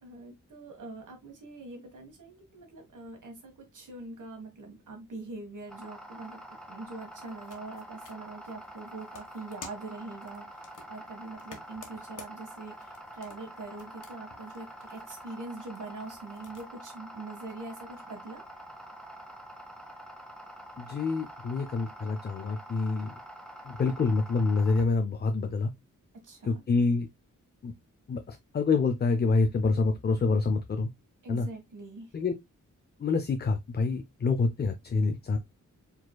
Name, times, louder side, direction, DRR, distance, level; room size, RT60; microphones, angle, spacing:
voice 1, 0.0-6.4 6.7-10.6 10.9-18.4 26.2-26.6 31.2-32.2, right 3 dB, 75° right, 1.6 m, -43 dB
sound 1, 5.7-24.8, right 1 dB, ahead, 0.9 m, -46 dB
sound 2, 7.1-16.7, left 4 dB, 80° left, 1.3 m, -53 dB
voice 2, 20.8-23.1 23.7-25.7 26.4-27.1 27.6-27.7 28.1-30.9 31.3-31.5 32.1-32.3 33.0-35.4, left 4 dB, 35° left, 0.4 m, -27 dB
4.9 x 4.0 x 2.2 m
wide cardioid pair, 170°, 31 cm